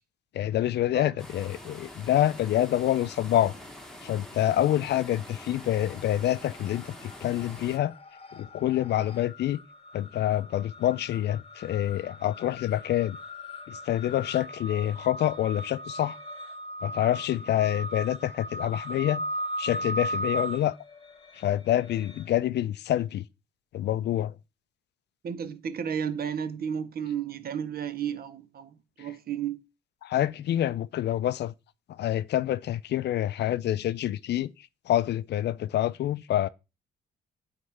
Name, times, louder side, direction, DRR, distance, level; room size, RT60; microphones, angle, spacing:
voice 1, 0.3-3.5 4.0-7.9 8.4-9.6 9.9-13.2 13.7-16.2 16.8-19.2 19.6-20.8 21.3-23.2 23.7-24.3 30.0-31.5 32.0-34.5 34.9-36.5, left 12 dB, 60° left, 0.4 m, -27 dB
sound 1, 1.2-7.8, left 1 dB, 5° left, 1.2 m, -45 dB
sound 2, 4.8-5.4 5.6-22.3, equal, 30° left, 1.0 m, -38 dB
voice 2, 25.2-29.6, right 8 dB, 50° right, 0.7 m, -33 dB
9.3 x 3.2 x 3.3 m
cardioid pair, 90°, 20 cm